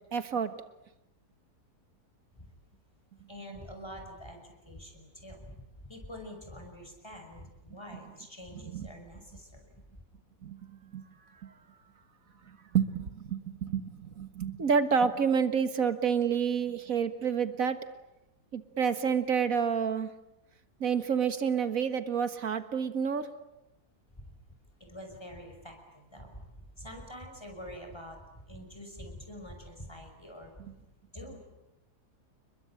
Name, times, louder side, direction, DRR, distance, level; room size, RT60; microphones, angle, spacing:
voice 1, 0.1-0.5 8.7-8.9 10.4-10.6 10.9-11.0 11.4-11.5 12.5-17.8 18.5-20.1 20.8-23.3, right 6 dB, 60° right, 10 dB, 2.0 m, -29 dB
voice 2, 3.3-9.8 24.2-24.3 24.8-30.8 31.1-31.4, equal, 15° left, 4 dB, 5.8 m, -46 dB
30.0 x 21.5 x 8.8 m, 0.91 s
omnidirectional pair, 1.7 m